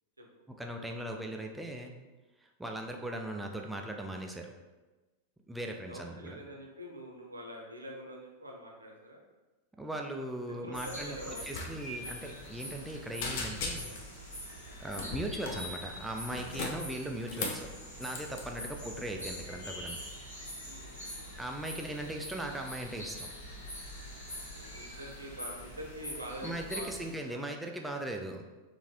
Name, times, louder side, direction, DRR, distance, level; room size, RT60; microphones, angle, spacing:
voice 1, 0.5-1.9 2.4-4.5 5.5-6.4 9.8-14.0 14.8-17.7 18.0-20.0 21.4-23.3 26.4-28.4, right 1 dB, 5° right, 2 dB, 0.3 m, -39 dB
voice 2, 5.9-9.2 10.5-11.6 14.6-14.8 18.5-18.6 20.6-21.4 21.8-21.9 24.3-26.9 27.3-27.4, equal, 80° right, 0 dB, 0.6 m, -45 dB
sound 1, 10.7-27.1, equal, 75° left, 1.2 m, -44 dB
sound 2, 11.5-11.7 11.9-12.1 12.5-12.9 13.2-14.1 14.9-15.7 16.2-17.7 18.1-18.4, left 3 dB, 50° left, 0.5 m, -37 dB
3.8 x 2.5 x 2.6 m, 1.2 s
figure-of-eight pair, 90°, 0 cm